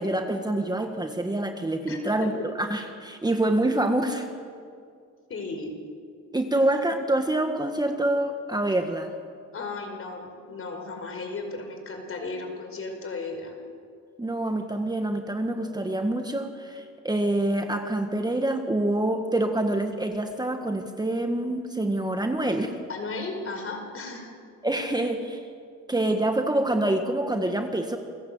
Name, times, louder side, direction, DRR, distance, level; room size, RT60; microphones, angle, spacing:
voice 1, 0.0-4.3 6.3-9.1 14.2-22.7 24.6-25.4 25.9-28.0, right 1 dB, 15° right, 5 dB, 1.7 m, -26 dB
voice 2, 1.9-2.3 3.6-3.8 5.3-5.7 9.5-13.5 22.9-24.3, left 3 dB, 45° left, 4 dB, 5.1 m, -35 dB
28.5 x 15.5 x 8.1 m, 2.2 s
cardioid pair, 90°, 30 cm